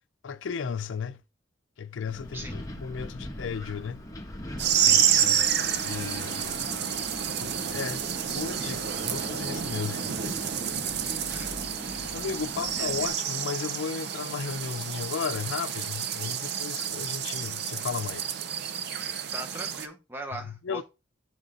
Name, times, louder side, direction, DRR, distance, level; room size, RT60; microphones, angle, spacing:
voice 1, 0.2-1.2 1.8-4.0 4.9-5.4 5.8-6.7 7.4-8.0 8.3-10.9 12.1-18.3 20.3-20.8, left 6 dB, 80° left, 0.5 m, -35 dB
Wind, 2.1-13.1, left 1 dB, 20° left, 0.9 m, -41 dB
voice 2, 2.3-2.6 4.7-5.4 11.3-12.2 12.8-13.2 19.3-20.8, right 1 dB, 10° right, 0.7 m, -41 dB
sound 1, 4.6-19.9, right 9 dB, 60° right, 0.5 m, -29 dB
7.7 x 4.1 x 3.7 m
head